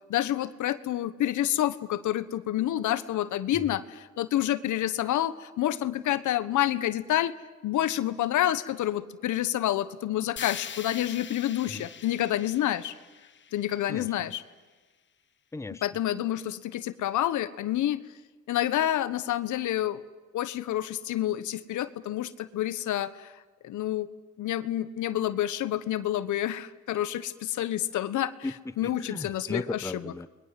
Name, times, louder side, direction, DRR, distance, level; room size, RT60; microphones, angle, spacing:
voice 1, 0.1-7.3 7.6-12.9 13.5-14.4 15.8-18.0 18.5-20.0 20.3-23.3 23.6-24.1 24.4-28.3 28.8-29.6, left 12 dB, 80° left, 14 dB, 1.3 m, -28 dB
sound 1, 10.4-14.4, left 8 dB, 40° left, 0.9 m, -43 dB
voice 2, 13.9-14.3 15.5-15.8 28.4-30.3, left 2 dB, 10° left, 15 dB, 0.7 m, -37 dB
29.5 x 22.0 x 7.7 m, 1.3 s
cardioid pair, 90°, 30 cm